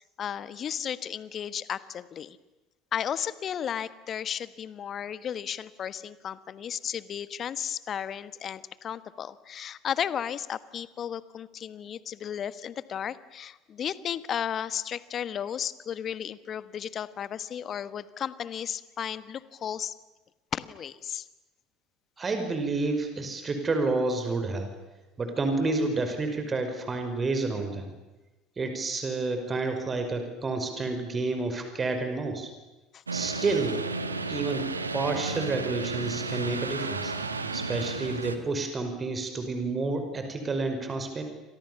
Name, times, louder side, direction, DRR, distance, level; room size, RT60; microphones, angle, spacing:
voice 1, 0.2-2.4 2.9-19.9 20.5-21.3 32.9-33.0, left 9 dB, 40° left, 15 dB, 1.4 m, -34 dB
voice 2, 22.2-24.7 25.2-27.9 28.6-32.5 33.1-33.8 34.3-34.7 34.9-41.2, right 3 dB, 25° right, 6 dB, 5.5 m, -29 dB
sound 1, 33.1-38.4, right 3 dB, 85° right, 1.8 m, -33 dB
29.0 x 26.0 x 7.1 m, 1.1 s
figure-of-eight pair, 65°, 0 cm